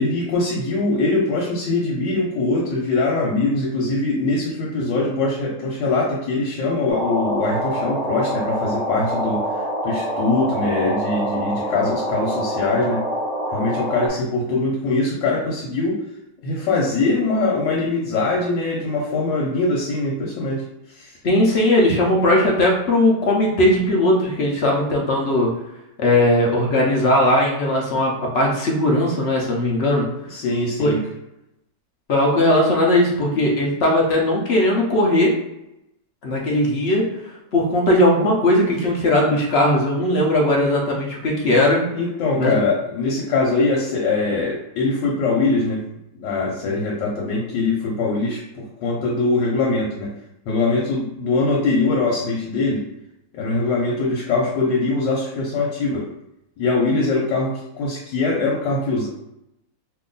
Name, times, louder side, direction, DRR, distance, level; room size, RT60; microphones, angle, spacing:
voice 1, 0.0-9.5 9.8-13.0 13.5-16.0 16.4-20.6 20.9-21.2 30.3-31.0 41.9-45.8 46.2-50.1 50.5-52.8 53.3-56.1 56.6-59.1, left 3 dB, 85° left, -3 dB, 1.4 m, -22 dB
sound 1, 6.9-14.1, right 1 dB, 40° right, 0.5 m, -25 dB
voice 2, 21.2-25.5 26.0-30.1 30.8-31.0 32.1-35.3 36.2-37.0 37.5-41.8 42.4-42.6, left 1 dB, 55° left, -2 dB, 0.7 m, -18 dB
2.9 x 2.6 x 3.8 m, 0.86 s
omnidirectional pair, 1.9 m